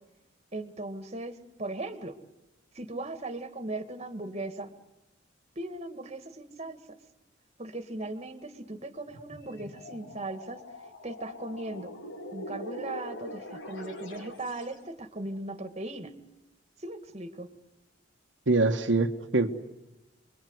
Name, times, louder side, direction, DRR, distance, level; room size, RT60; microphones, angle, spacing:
voice 1, 0.5-2.2 2.8-4.7 5.6-6.8 7.6-10.6 11.0-12.0 12.3-16.1 16.8-17.5, right 2 dB, 35° right, 9 dB, 2.2 m, -38 dB
sound 1, 9.0-14.8, left 1 dB, 75° left, 3.9 m, -43 dB
voice 2, 18.5-19.7, right 3 dB, 75° right, 3 dB, 1.6 m, -25 dB
29.0 x 22.5 x 8.1 m, 0.99 s
head